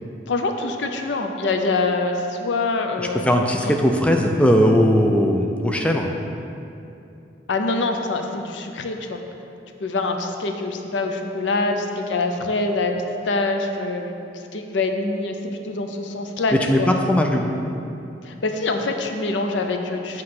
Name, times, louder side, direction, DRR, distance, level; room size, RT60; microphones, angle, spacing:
voice 1, 0.3-3.7 7.5-9.2 9.8-13.0 13.2-14.2 14.5-15.4 15.6-16.9 18.2-20.2, left 3 dB, 85° left, 5 dB, 0.6 m, -25 dB
voice 2, 3.0-6.1 16.5-17.5, equal, 5° left, 2 dB, 0.3 m, -19 dB
7.6 x 3.2 x 5.8 m, 2.7 s
head